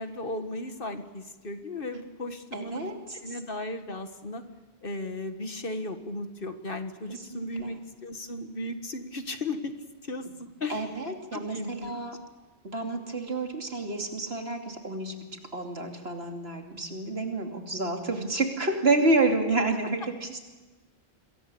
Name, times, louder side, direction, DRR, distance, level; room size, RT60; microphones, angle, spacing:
voice 1, 0.0-4.4 4.8-9.7 10.0-11.9, left 2 dB, 55° left, 7 dB, 1.8 m, -36 dB
voice 2, 2.5-2.9 7.3-7.7 10.7-12.2 12.7-15.1 15.5-20.4, right 2 dB, 70° right, 3 dB, 3.0 m, -29 dB
27.0 x 22.5 x 7.0 m, 1.2 s
omnidirectional pair, 1.1 m